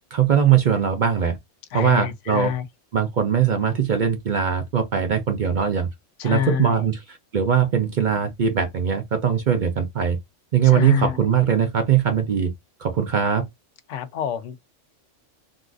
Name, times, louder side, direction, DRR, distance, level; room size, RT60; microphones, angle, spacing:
voice 1, 0.1-1.4 1.7-2.5 2.9-5.9 6.2-10.2 10.5-12.5 12.8-13.5, right 8 dB, 50° right, 0.6 m, -21 dB
voice 2, 1.7-2.6 6.2-6.8 10.6-11.3 13.9-14.6, left 11 dB, 80° left, 0.9 m, -27 dB
3.8 x 2.4 x 2.4 m
omnidirectional pair, 1.3 m